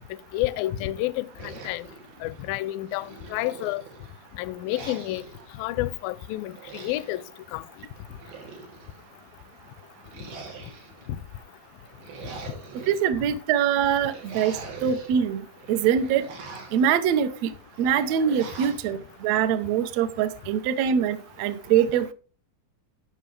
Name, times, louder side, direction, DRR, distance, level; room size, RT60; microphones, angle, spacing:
voice 1, 0.3-1.9 2.2-3.8 4.4-5.2 5.6-7.2 7.5-7.6, left 16 dB, 80° left, 2.3 m, -29 dB
sound 1, 1.4-2.5 2.9-4.1 4.7-5.4 6.5-7.2 8.0-9.0 10.1-11.1 11.8-13.0 13.9-15.1 15.5-16.9 17.8-18.9, right 4 dB, 90° right, 4.6 m, -43 dB
voice 2, 12.9-14.5 14.8-15.4 15.7-16.2 16.7-17.5 17.8-22.1, right 8 dB, 70° right, 1.7 m, -23 dB
17.5 x 6.1 x 3.4 m
omnidirectional pair, 4.1 m